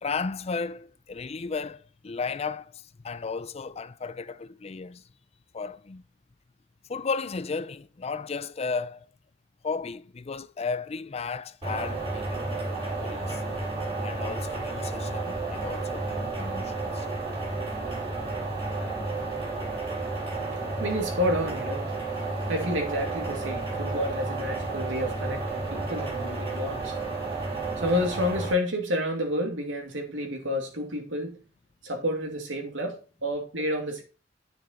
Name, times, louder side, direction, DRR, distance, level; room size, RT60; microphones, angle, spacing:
voice 1, 0.0-5.0 5.5-6.0 6.9-9.1 9.6-13.4 14.0-17.1 26.7-26.8, left 4 dB, 35° left, 0.5 m, -34 dB
sound 1, 11.6-28.5, right 3 dB, 30° right, 5.4 m, -32 dB
voice 2, 20.4-27.0 27.7-31.4 31.8-34.0, left 1 dB, 90° right, 2.6 m, -30 dB
9.1 x 6.6 x 4.3 m
head